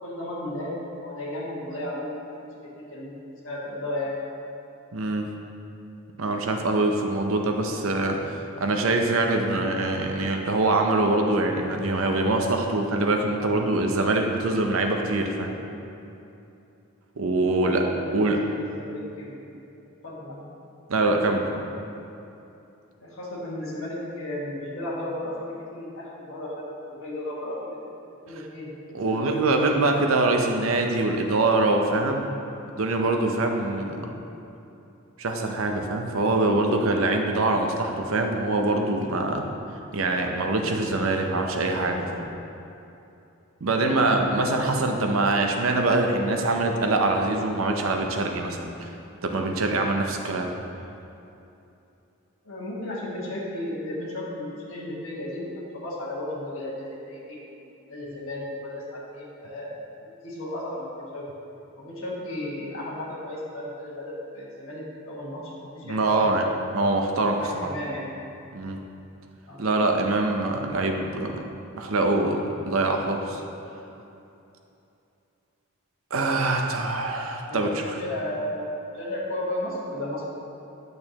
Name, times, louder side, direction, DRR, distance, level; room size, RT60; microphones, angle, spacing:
voice 1, 0.0-3.1 3.4-4.2 17.4-18.1 18.4-19.5 20.0-20.5 23.0-27.6 28.2-29.2 33.9-34.1 52.4-56.7 57.0-61.2 61.8-66.3 66.8-66.9 67.4-68.1 69.4-69.6 76.7-76.8 77.5-80.3, left 1 dB, 70° left, -6 dB, 1.6 m, -34 dB
voice 2, 4.9-5.3 6.2-15.6 17.2-17.8 18.1-18.4 20.9-21.6 28.3-28.4 28.9-32.3 32.8-34.1 35.2-39.4 39.9-42.3 43.6-48.9 49.2-50.5 65.9-66.5 66.7-67.7 68.5-68.8 69.6-71.3 71.8-73.4 76.1-77.7, right 2 dB, 75° right, 3 dB, 0.7 m, -24 dB
8.6 x 6.6 x 2.9 m, 2.8 s
head